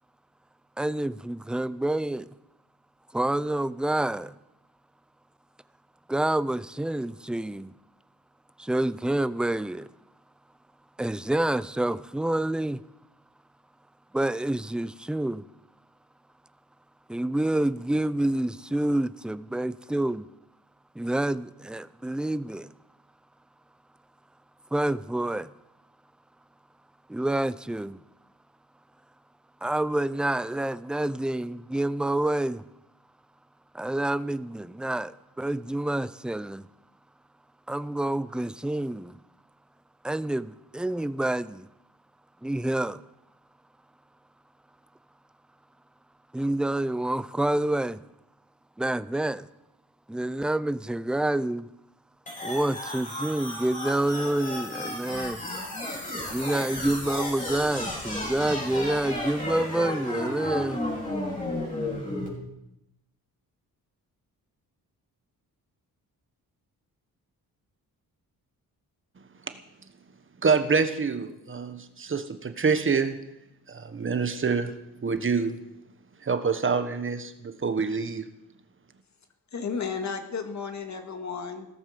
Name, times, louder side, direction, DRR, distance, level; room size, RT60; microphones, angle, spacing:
voice 1, 0.8-2.3 3.1-4.3 6.1-7.7 8.6-9.9 11.0-12.8 14.1-15.4 17.1-20.3 21.0-22.7 24.7-25.5 27.1-28.0 29.6-32.6 33.7-36.7 37.7-39.1 40.0-41.7 42.4-43.0 46.3-48.0 48.8-49.5 50.1-51.7 52.4-55.4 56.3-60.8, right 1 dB, ahead, 0.4 m, -28 dB
sound 1, 52.3-62.3, left 1 dB, 20° left, 5.2 m, -33 dB
voice 2, 70.4-73.2 73.7-74.8 75.0-75.6 76.2-78.3, right 5 dB, 35° right, 1.3 m, -26 dB
voice 3, 79.5-81.7, left 5 dB, 50° left, 2.2 m, -33 dB
17.0 x 14.0 x 5.3 m
cardioid pair, 115°, 36 cm